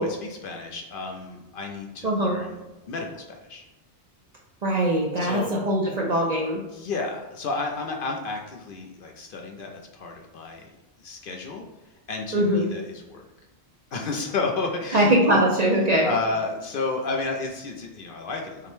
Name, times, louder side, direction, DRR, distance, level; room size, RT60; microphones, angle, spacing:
voice 1, 0.0-2.6 2.9-3.6 5.2-5.5 6.7-10.7 11.0-11.6 12.1-13.3 13.9-15.4 15.7-18.7, left 3 dB, 60° left, 2 dB, 0.7 m, -32 dB
voice 2, 2.0-2.4 4.6-6.6 12.3-12.7 14.9-16.1, right 1 dB, 50° right, -2 dB, 0.5 m, -21 dB
5.7 x 2.1 x 3.2 m, 1.0 s
omnidirectional pair, 1.1 m